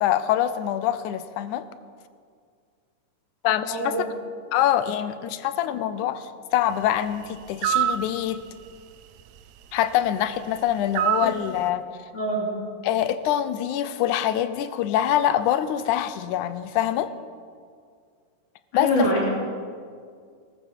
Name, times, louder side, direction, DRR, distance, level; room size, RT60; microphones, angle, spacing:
voice 1, 0.0-1.7 3.4-4.0 4.5-8.4 9.7-11.9 12.8-17.1 18.7-19.1, left 11 dB, 85° left, 13 dB, 2.1 m, -24 dB
voice 2, 3.7-4.0 12.1-12.5 18.7-19.3, equal, 40° left, -3 dB, 3.8 m, -24 dB
sound 1, 7.6-8.0 11.0-11.4, right 11 dB, 80° right, 1.6 m, -22 dB
18.5 x 14.0 x 4.6 m, 2.1 s
omnidirectional pair, 3.5 m